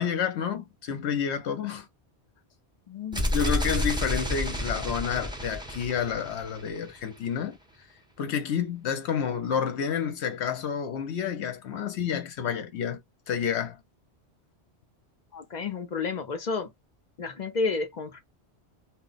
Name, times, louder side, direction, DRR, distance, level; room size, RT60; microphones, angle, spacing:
voice 1, 0.0-1.9 3.2-7.6 8.2-13.0 13.3-13.8, left 8 dB, 80° left, 1.0 m, -29 dB
voice 2, 2.9-3.3 15.3-16.7 17.2-18.2, left 4 dB, 50° left, 0.6 m, -31 dB
sound 1, 3.1-7.0, equal, 5° right, 0.4 m, -30 dB
2.2 x 2.0 x 3.8 m
omnidirectional pair, 1.1 m